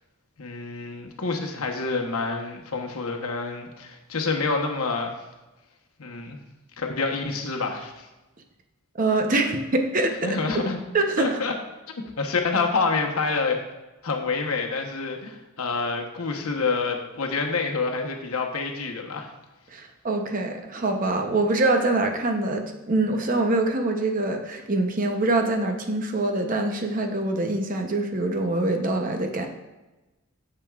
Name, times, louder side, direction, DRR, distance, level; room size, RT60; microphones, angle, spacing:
voice 1, 0.4-5.1 6.0-6.4 6.8-8.1 10.2-10.8 11.2-11.5 12.2-13.6 14.0-19.3, left 4 dB, 85° left, 2 dB, 1.0 m, -27 dB
voice 2, 9.0-10.6 10.9-11.4 19.7-29.5, right 2 dB, 40° right, 4 dB, 0.7 m, -24 dB
9.0 x 6.8 x 2.4 m, 1.1 s
head